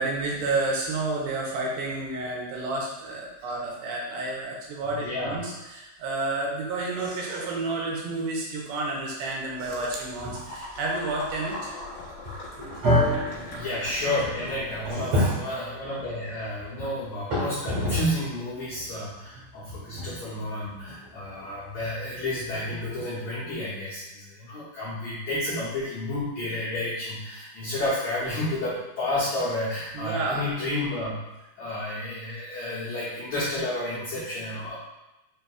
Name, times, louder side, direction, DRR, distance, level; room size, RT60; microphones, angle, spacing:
voice 1, 0.0-11.7 12.7-12.8 13.4-13.5 14.8-15.4 29.9-30.5, right 2 dB, 85° right, -2 dB, 2.6 m, -30 dB
voice 2, 4.9-5.4 13.5-31.2 31.6-34.7, left 1 dB, 80° left, -10 dB, 1.6 m, -31 dB
sound 1, 9.6-14.9, left 2 dB, 65° left, 2.2 m, -41 dB
sound 2, 10.1-10.6 10.9-11.0 11.7-11.8 12.2-18.3 18.7-23.0, left 1 dB, 70° right, 1.2 m, -33 dB
sound 3, 12.8-21.1, equal, 50° right, 1.3 m, -32 dB
6.2 x 2.7 x 2.3 m, 0.97 s
omnidirectional pair, 4.4 m